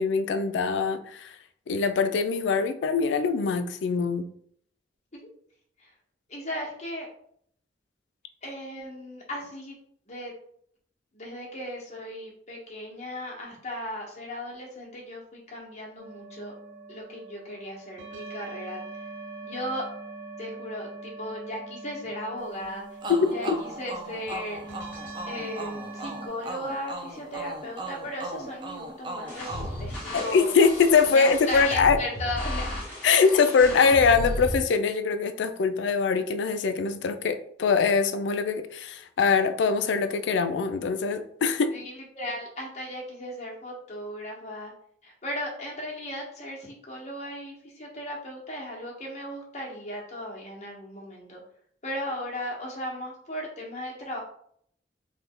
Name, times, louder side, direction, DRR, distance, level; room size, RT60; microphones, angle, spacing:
voice 1, 0.0-1.4 1.7-4.2 23.1-23.3 30.1-32.0 33.0-41.7, left 5 dB, 85° left, 10 dB, 0.3 m, -23 dB
voice 2, 6.3-7.1 8.4-9.8 10.1-10.3 11.1-16.6 16.9-18.8 19.4-19.8 20.4-22.8 23.3-24.8 25.3-30.5 31.1-32.6 33.8-33.9 41.7-44.7 45.0-51.4 51.8-54.2, left 1 dB, 40° left, -2 dB, 0.9 m, -36 dB
sound 1, 16.0-26.3, right 3 dB, 85° right, 1.0 m, -42 dB
sound 2, 23.0-30.6, right 1 dB, 25° right, 0.3 m, -38 dB
sound 3, 29.3-34.6, left 1 dB, 5° left, 1.2 m, -34 dB
3.2 x 2.1 x 3.6 m, 0.64 s
head